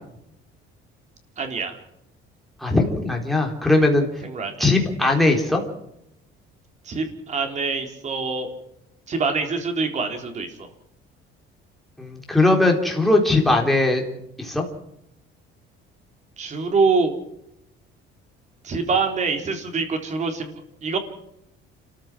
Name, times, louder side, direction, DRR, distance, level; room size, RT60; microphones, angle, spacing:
voice 1, 1.4-1.8 4.2-4.7 6.8-8.5 9.1-10.7 16.4-17.1 18.6-21.0, right 4 dB, 35° right, 5 dB, 3.8 m, -25 dB
voice 2, 2.6-4.1 4.6-5.6 12.0-14.0 14.4-14.6, left 2 dB, ahead, 1 dB, 3.8 m, -19 dB
29.5 x 14.5 x 6.2 m, 0.79 s
cardioid pair, 155°, 21 cm